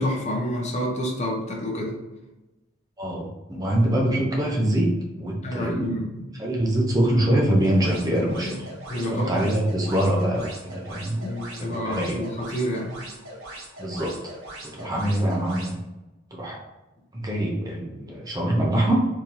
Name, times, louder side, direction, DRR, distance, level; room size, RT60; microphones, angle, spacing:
voice 1, 0.0-2.0 5.4-6.2 8.4-8.6 8.9-9.3 11.1-13.0, equal, 35° left, 0 dB, 0.6 m, -29 dB
voice 2, 3.0-5.9 6.3-8.7 9.0-11.2 11.6-12.2 13.8-14.1 14.6-15.8 16.3-16.6 17.1-19.0, right 1 dB, 20° right, -1 dB, 0.5 m, -24 dB
sound 1, 7.6-15.7, right 1 dB, 90° right, 1.2 m, -41 dB
3.7 x 2.7 x 2.9 m, 1.0 s
head